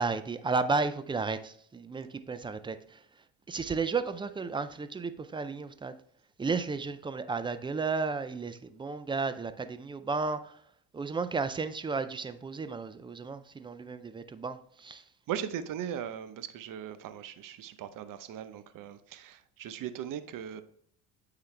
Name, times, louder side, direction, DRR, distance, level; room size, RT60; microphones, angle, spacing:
voice 1, 0.0-3.0 3.5-5.9 6.4-10.5 10.9-15.0, right 4 dB, 15° right, 0.3 m, -33 dB
voice 2, 15.3-20.6, right 9 dB, 50° right, 0.7 m, -39 dB
8.8 x 3.9 x 3.3 m
supercardioid pair, 95°, 41 cm